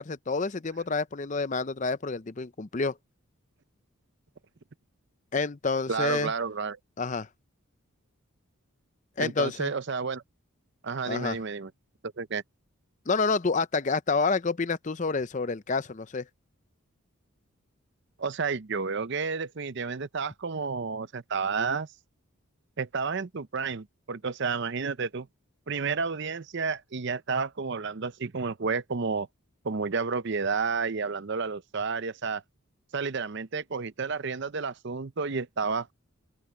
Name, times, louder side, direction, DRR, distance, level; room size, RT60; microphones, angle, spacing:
voice 1, 0.0-3.0 5.3-6.3 7.0-7.3 9.2-9.7 11.1-11.4 13.1-16.3, left 4 dB, 35° left, 0.6 m, -28 dB
voice 2, 5.9-6.8 9.2-10.2 10.8-11.7 12.2-12.4 18.2-21.9 22.8-25.3 25.7-29.3 29.6-32.4 32.9-35.9, right 5 dB, 50° right, 0.6 m, -31 dB
head